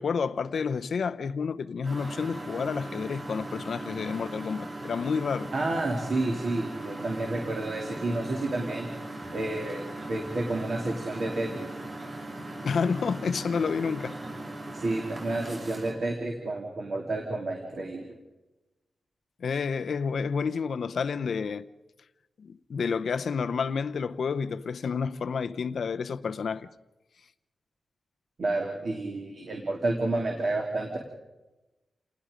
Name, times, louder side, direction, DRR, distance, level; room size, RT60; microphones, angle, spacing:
voice 1, 0.0-5.5 12.6-14.2 19.4-21.7 22.4-26.7, left 5 dB, 55° left, 0.7 m, -30 dB
Engine, 1.8-15.9, right 1 dB, 25° right, 7.5 m, -39 dB
voice 2, 5.5-8.9 9.3-11.7 14.7-18.1 28.4-31.0, right 2 dB, 45° right, 2.8 m, -30 dB
29.0 x 19.5 x 5.2 m
wide cardioid pair, 180°, 0 cm